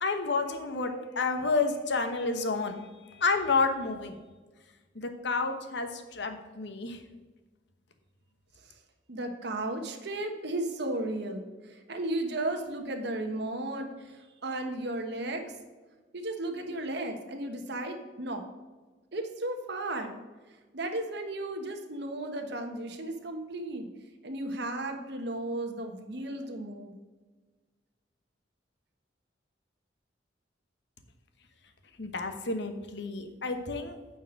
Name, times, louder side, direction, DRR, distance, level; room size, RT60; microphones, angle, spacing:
voice 1, 0.0-2.8 3.1-4.2 4.9-7.0 32.0-34.0, left 4 dB, 65° left, 7 dB, 1.1 m, -30 dB
voice 2, 9.1-15.4 16.1-18.4 19.1-20.2 20.7-23.9 24.2-26.9, right 1 dB, 65° right, 4 dB, 1.2 m, -34 dB
9.2 x 4.7 x 6.3 m, 1.3 s
head